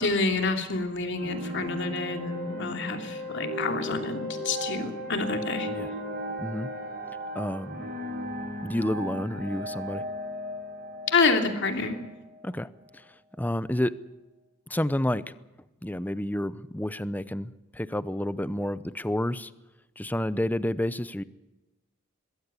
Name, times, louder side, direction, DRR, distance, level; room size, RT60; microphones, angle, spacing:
voice 1, 0.0-5.7 11.1-12.0, left 3 dB, 65° left, 5 dB, 2.8 m, -28 dB
sound 1, 1.2-12.4, equal, 50° right, 7.6 m, -36 dB
voice 2, 6.4-6.7 7.3-7.9 8.6-10.0 12.4-12.7 13.4-13.9 14.7-15.2 15.8-19.5 20.0-21.2, left 1 dB, 10° left, 15 dB, 0.7 m, -29 dB
22.0 x 16.0 x 9.8 m, 1.1 s
head